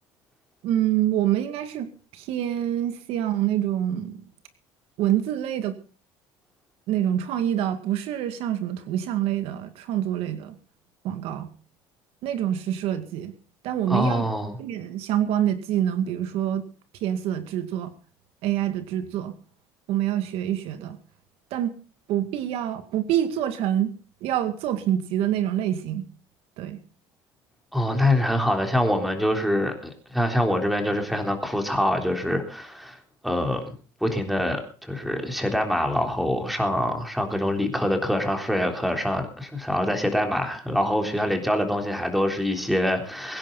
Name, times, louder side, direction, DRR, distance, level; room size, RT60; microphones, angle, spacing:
voice 1, 0.6-4.2 5.0-5.7 6.9-10.6 11.0-11.5 12.2-13.3 13.6-14.2 14.6-16.6 17.0-17.9 18.4-19.3 19.9-21.0 21.5-21.7 22.1-23.9 24.2-26.0 26.6-26.8, right 11 dB, 70° right, 8 dB, 2.1 m, -26 dB
voice 2, 13.9-14.6 27.7-33.0 33.2-33.6 34.0-43.4, left 1 dB, ahead, 4 dB, 3.6 m, -25 dB
23.0 x 10.5 x 4.0 m, 0.37 s
cardioid pair, 120°, 10 cm